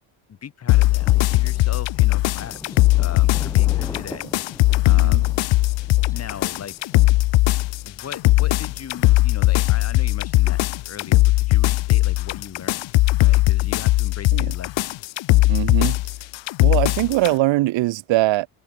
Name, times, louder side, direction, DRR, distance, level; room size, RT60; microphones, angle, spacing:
voice 1, 0.3-4.2 4.9-5.3 6.1-6.9 7.8-10.6 10.9-12.9 13.2-14.9, left 8 dB, 35° left, 4.2 m, -38 dB
sound 1, 0.7-17.3, left 18 dB, 70° left, 1.6 m, -19 dB
Thunder, 0.8-10.8, left 2 dB, 5° left, 3.0 m, -43 dB
voice 2, 4.9-5.2 14.3-14.5 15.5-16.0 16.6-18.5, right 18 dB, 75° right, 2.1 m, -21 dB
cardioid pair, 170°, 46 cm